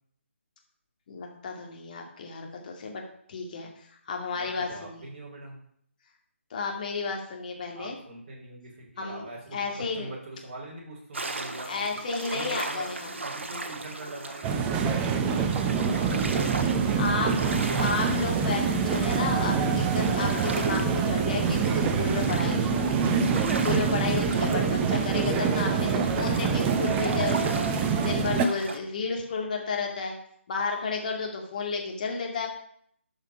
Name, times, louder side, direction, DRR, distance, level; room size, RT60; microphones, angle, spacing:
voice 1, 1.1-3.0 3.3-5.1 6.5-8.0 9.0-10.1 11.7-13.2 17.0-17.3 17.8-23.0 23.5-27.7 28.0-30.2 30.5-32.5, left 4 dB, 35° left, 1 dB, 2.3 m, -32 dB
voice 2, 4.3-5.6 7.7-11.9 12.3-12.9 13.2-18.0 25.7-26.1, right 2 dB, 35° right, -3 dB, 4.1 m, -43 dB
sound 1, 11.1-28.8, right 3 dB, 60° right, 1.5 m, -38 dB
sound 2, 14.4-28.5, right 6 dB, 15° right, 0.6 m, -25 dB
12.0 x 5.7 x 5.5 m, 0.67 s
figure-of-eight pair, 150°, 7 cm